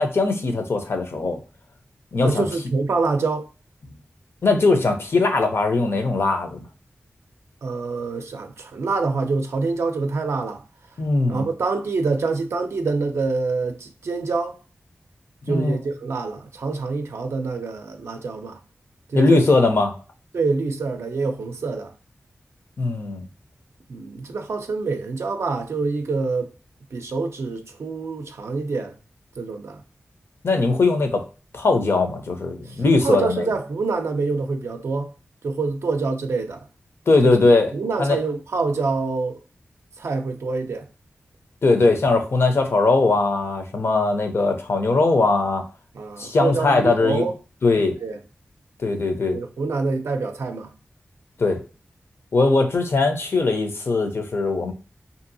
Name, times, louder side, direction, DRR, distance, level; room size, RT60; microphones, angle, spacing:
voice 1, 0.0-1.4 2.1-2.4 4.4-6.6 11.0-11.5 15.4-15.8 19.1-19.9 22.8-23.3 30.4-31.2 31.5-33.5 37.1-37.7 38.0-38.2 41.6-45.6 46.2-47.2 47.6-47.9 48.8-49.4 51.4-51.6 52.3-54.7, left 3 dB, 65° left, 0.6 m, -20 dB
voice 2, 2.2-3.5 7.6-10.6 11.3-14.6 15.5-18.6 19.1-19.4 20.3-21.9 23.9-26.5 26.9-28.9 29.4-29.8 32.7-32.8 33.0-35.1 35.4-36.6 37.2-37.4 37.7-39.4 40.0-40.9 45.9-47.3 48.0-48.2 49.3-50.7, right 4 dB, 80° right, 0.4 m, -26 dB
2.7 x 2.6 x 2.6 m
wide cardioid pair, 75°, 5 cm